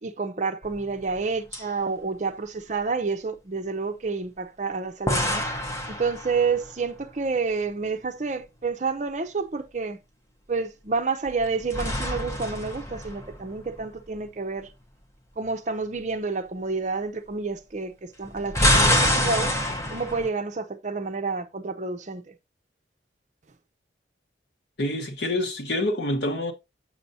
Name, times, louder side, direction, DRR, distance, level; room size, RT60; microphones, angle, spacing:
voice 1, 0.0-5.5 5.9-10.0 10.5-14.7 15.4-19.6 19.9-22.3, right 4 dB, 40° right, 0.6 m, -29 dB
sound 1, 0.6-1.3 1.5-1.6 5.1-6.7 11.3-13.8 18.2-20.3, left 1 dB, 15° left, 0.8 m, -26 dB
voice 2, 24.8-26.5, left 1 dB, 65° left, 1.2 m, -27 dB
6.9 x 6.7 x 2.7 m
head